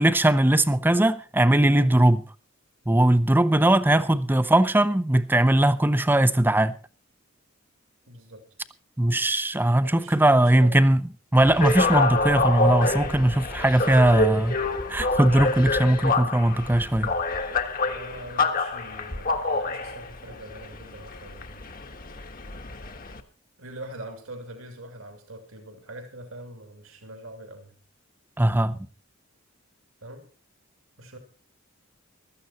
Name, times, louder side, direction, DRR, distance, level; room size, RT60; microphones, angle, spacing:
voice 1, 0.0-2.2 2.9-6.7 9.0-11.0 11.3-14.6 14.9-17.1 28.4-28.8, right 1 dB, 10° right, 0.6 m, -20 dB
voice 2, 3.7-4.0 8.1-8.4 9.8-10.7 17.8-21.7 23.6-27.7 30.0-30.3 31.0-31.2, right 1 dB, 80° right, 2.9 m, -43 dB
sound 1, 11.3-23.2, left 3 dB, 45° left, 1.4 m, -27 dB
15.5 x 13.0 x 4.2 m
head